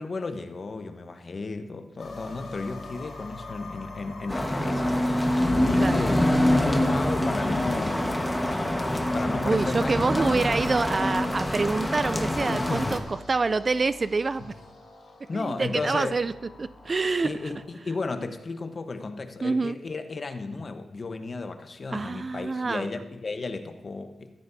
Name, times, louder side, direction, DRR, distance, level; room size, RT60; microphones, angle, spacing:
voice 1, 0.0-6.3 6.6-8.1 8.4-10.4 12.4-13.0 15.3-16.2 17.2-24.3, left 3 dB, 50° left, 8 dB, 1.1 m, -34 dB
sound 1, 2.0-17.6, left 3 dB, 65° left, 4.1 m, -45 dB
sound 2, 4.3-13.0, left 1 dB, 15° left, 1.4 m, -25 dB
voice 2, 9.4-14.5 15.3-16.3 16.6-17.3 19.4-19.8 21.9-22.9, right 3 dB, 45° right, 15 dB, 0.4 m, -26 dB
14.5 x 13.0 x 2.8 m, 1.2 s
cardioid pair, 50°, 0 cm